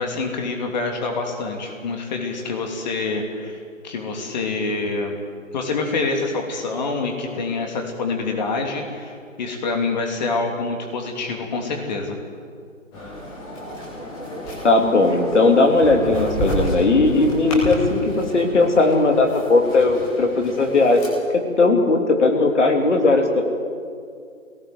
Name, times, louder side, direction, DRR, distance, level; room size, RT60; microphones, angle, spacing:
voice 1, 0.0-3.6 3.8-5.2 5.5-12.2, left 3 dB, 35° left, 2 dB, 3.0 m, -26 dB
sound 1, 12.9-21.1, equal, 5° left, 0.7 m, -31 dB
voice 2, 14.6-21.0 21.6-23.4, left 3 dB, 60° left, 3 dB, 3.1 m, -17 dB
20.5 x 18.0 x 8.0 m, 2.3 s
figure-of-eight pair, 150°, 40 cm